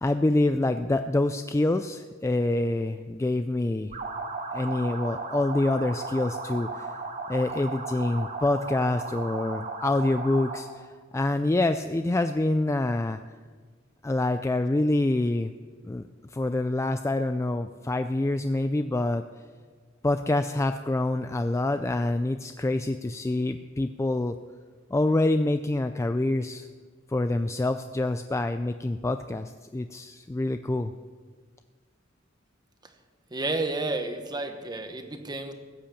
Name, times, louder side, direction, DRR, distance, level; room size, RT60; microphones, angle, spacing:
voice 1, 0.0-4.0 4.5-7.0 7.3-10.9 11.1-13.2 14.0-15.5 15.8-16.0 16.3-19.2 20.0-24.4 24.9-26.7 27.1-30.9, left 2 dB, 15° left, 9 dB, 0.3 m, -26 dB
sound 1, 3.9-10.7, right 3 dB, 45° right, 1.8 m, -35 dB
voice 2, 33.3-35.5, right 2 dB, 20° right, 7 dB, 1.2 m, -31 dB
15.5 x 8.7 x 7.1 m, 1.5 s
head